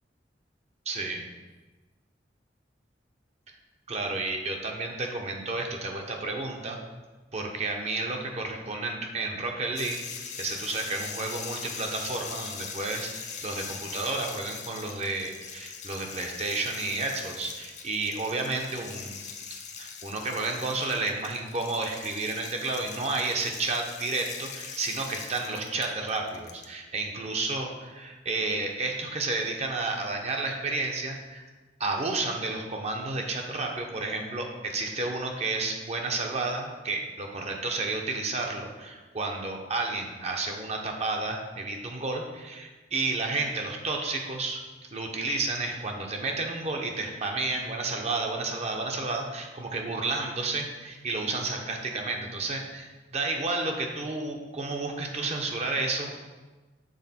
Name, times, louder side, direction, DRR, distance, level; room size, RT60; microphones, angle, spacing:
voice 1, 0.9-1.2 3.9-6.8 7.3-10.0 10.4-31.5 31.8-44.6 44.9-56.1, right 3 dB, 40° right, 2 dB, 0.7 m, -31 dB
sound 1, 9.8-26.7, left 6 dB, 40° left, 0.6 m, -41 dB
6.4 x 3.6 x 4.2 m, 1.2 s
head